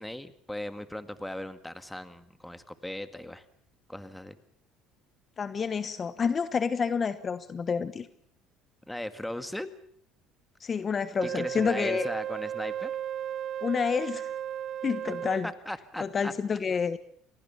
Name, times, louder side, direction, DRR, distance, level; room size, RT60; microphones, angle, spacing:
voice 1, 0.0-3.5 3.9-4.4 8.9-9.7 11.2-12.9 15.4-16.3, left 1 dB, 5° left, 11 dB, 2.0 m, -38 dB
voice 2, 5.4-8.1 10.6-12.1 13.6-14.3 14.8-15.5 16.0-17.0, left 6 dB, 35° left, 13 dB, 1.2 m, -29 dB
Wind instrument woodwind instrument, 11.2-15.5, right 10 dB, 50° right, 1.3 m, -35 dB
27.0 x 18.5 x 7.2 m, 0.65 s
supercardioid pair, 85°, 0 cm